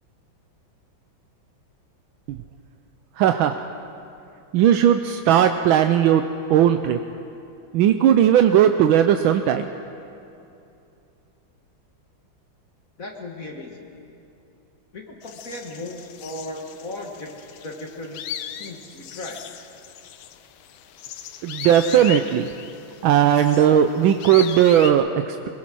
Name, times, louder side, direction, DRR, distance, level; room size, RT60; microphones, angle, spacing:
voice 1, 3.2-3.6 4.5-7.0 7.7-9.7 21.4-22.5 23.0-25.5, right 10 dB, 80° right, 7 dB, 1.4 m, -17 dB
voice 2, 13.0-13.8 14.9-17.3 17.6-18.2 18.6-19.4, left 1 dB, 45° left, 1 dB, 1.9 m, -36 dB
sound 1, 15.2-24.9, left 10 dB, 85° left, 1.7 m, -38 dB
22.5 x 21.0 x 6.2 m, 2.7 s
omnidirectional pair, 2.2 m